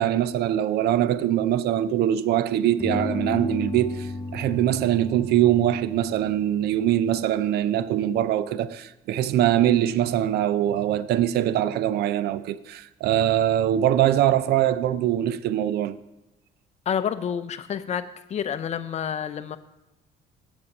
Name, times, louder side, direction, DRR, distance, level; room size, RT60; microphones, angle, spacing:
voice 1, 0.0-16.0, right 11 dB, 70° right, 0.5 m, -23 dB
sound 1, 1.1-2.3 2.8-8.0, left 2 dB, 20° left, 0.9 m, -35 dB
voice 2, 16.9-18.0 18.3-19.6, left 8 dB, 40° left, 0.6 m, -28 dB
8.4 x 7.2 x 5.3 m
cardioid pair, 110°, 17 cm